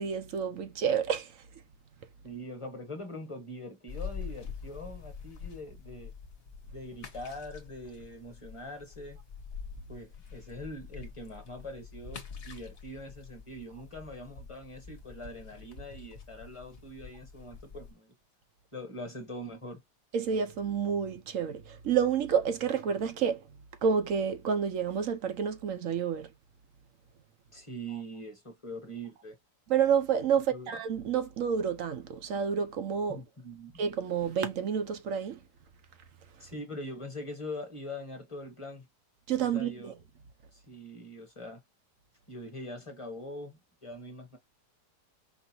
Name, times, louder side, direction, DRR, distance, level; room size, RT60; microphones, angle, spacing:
voice 1, 0.0-1.4 20.1-26.3 29.7-33.2 33.8-35.4 39.3-39.9, right 7 dB, 60° right, 1.0 m, -29 dB
voice 2, 2.2-6.1 6.7-9.2 9.9-18.1 18.7-19.8 27.5-29.4 30.5-30.9 33.1-33.8 36.4-38.9 39.5-39.9 40.5-41.6 42.3-44.4, left 1 dB, 20° left, 1.2 m, -43 dB
sound 1, 3.9-17.9, left 6 dB, 40° left, 1.1 m, -46 dB
5.3 x 2.7 x 2.7 m
omnidirectional pair, 1.9 m